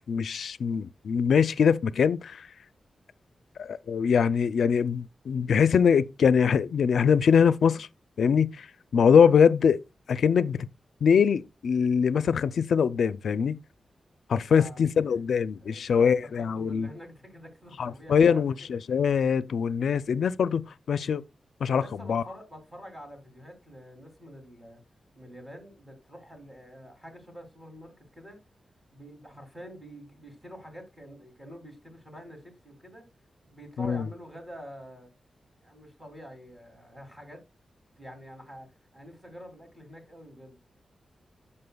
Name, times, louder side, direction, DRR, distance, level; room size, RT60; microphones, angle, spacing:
voice 1, 0.1-2.5 3.6-7.9 8.2-8.7 8.9-9.8 10.1-10.7 11.0-13.6 14.3-16.9 17.8-20.6 20.9-21.2 21.6-21.8 22.1-22.2 33.8-34.1, left 6 dB, 85° left, 0.4 m, -23 dB
voice 2, 14.4-14.8 15.6-18.7 21.7-24.8 25.1-28.4 28.9-33.0 33.4-35.1 35.6-37.4 38.0-38.7 38.9-40.6, equal, 15° right, 2.8 m, -46 dB
14.5 x 5.5 x 2.3 m
wide cardioid pair, 155°, 0 cm